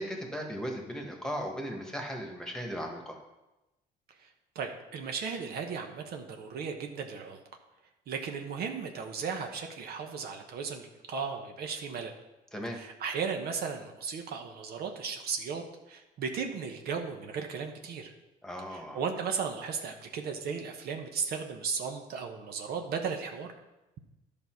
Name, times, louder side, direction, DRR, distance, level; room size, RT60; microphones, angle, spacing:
voice 1, 0.0-3.2 12.5-12.8 18.4-19.0, equal, 5° left, 2 dB, 1.6 m, -37 dB
voice 2, 4.5-7.4 8.1-12.1 12.7-18.1 18.7-23.5, right 6 dB, 65° right, 4 dB, 1.1 m, -36 dB
11.0 x 5.4 x 4.7 m, 0.99 s
cardioid pair, 110°, 17 cm